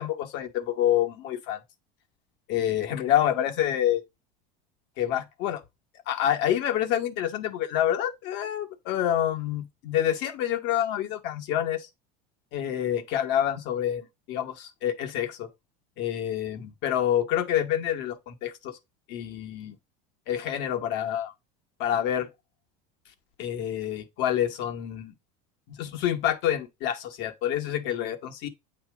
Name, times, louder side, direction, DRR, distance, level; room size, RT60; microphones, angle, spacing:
voice 1, 0.0-1.6 2.5-4.0 5.0-5.6 6.1-11.9 12.5-15.5 16.0-18.7 19.1-19.8 20.3-21.3 21.8-22.3 23.4-25.1 25.7-28.5, left 11 dB, 60° left, 1.2 m, -27 dB
8.1 x 2.9 x 4.7 m
supercardioid pair, 105°, 21 cm